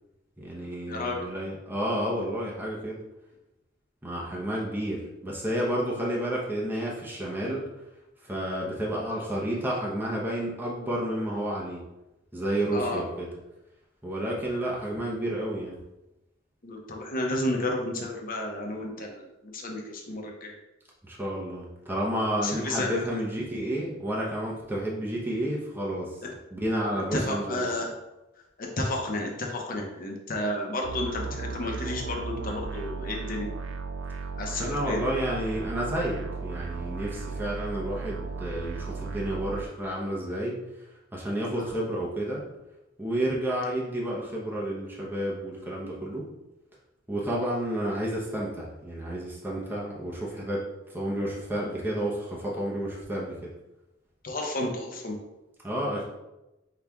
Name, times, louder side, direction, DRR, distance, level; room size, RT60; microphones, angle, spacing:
voice 1, 0.4-3.0 4.0-7.6 8.2-11.8 12.3-13.3 14.0-15.8 21.0-26.2 26.5-27.7 34.6-40.6 41.1-42.4 43.0-46.3 47.1-50.6 50.9-53.5 55.6-56.0, right 1 dB, 10° right, -4 dB, 0.7 m, -30 dB
voice 2, 16.6-20.5 22.4-23.2 27.1-27.9 28.6-33.5 34.4-35.0 41.6-41.7 54.2-55.1, left 1 dB, 45° left, 1 dB, 0.8 m, -31 dB
sound 1, 30.8-39.7, right 4 dB, 65° right, 0.4 m, -35 dB
5.8 x 2.4 x 3.4 m, 0.97 s
head